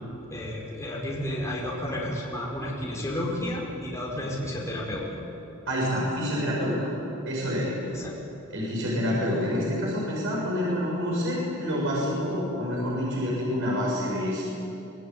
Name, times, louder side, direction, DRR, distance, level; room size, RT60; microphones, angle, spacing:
voice 1, 0.3-5.1 7.9-8.1, left 1 dB, 15° left, -3 dB, 4.7 m, -32 dB
voice 2, 5.7-6.9 7.3-7.7 8.5-14.4, equal, 65° right, -5 dB, 7.3 m, -27 dB
25.5 x 19.0 x 9.3 m, 2.9 s
head